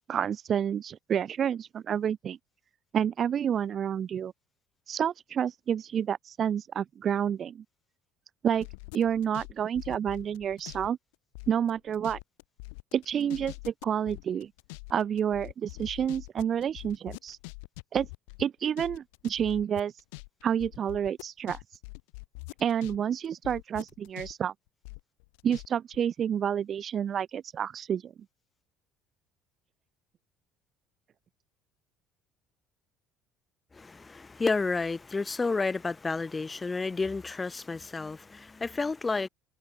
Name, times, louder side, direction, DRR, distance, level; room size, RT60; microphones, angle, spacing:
voice 1, 0.1-2.4 2.9-4.3 4.9-7.6 8.4-8.7 8.9-11.0 11.5-12.2 12.9-14.5 14.9-17.4 17.9-18.1 18.4-19.9 20.4-21.6 22.6-24.5 25.4-28.1, right 8 dB, 45° right, 0.9 m, -29 dB
sound 1, 8.6-10.9 11.1-23.0 23.2-25.7 25.9-26.0, left 31 dB, 80° left, 2.3 m, -44 dB
voice 2, 33.7-39.3, left 4 dB, 25° left, 3.2 m, -31 dB
supercardioid pair, 75°, 0 cm